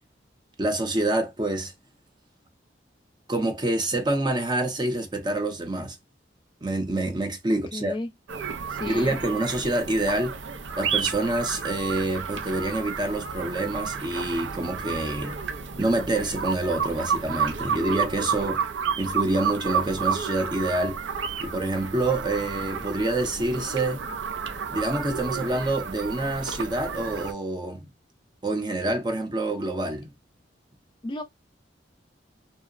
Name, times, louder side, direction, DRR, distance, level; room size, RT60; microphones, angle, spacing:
voice 1, 0.6-1.7 3.3-6.0 6.6-7.9 8.8-10.3 10.8-15.4 15.8-18.7 19.0-21.0 21.4-24.0 24.7-27.9 28.4-30.1, right 2 dB, 25° right, 0.5 m, -27 dB
voice 2, 7.5-8.1 8.7-9.2 31.0-31.2, left 2 dB, 25° left, 0.3 m, -34 dB
sound 1, 8.3-27.3, right 6 dB, 85° right, 0.5 m, -31 dB
2.8 x 2.0 x 2.4 m
head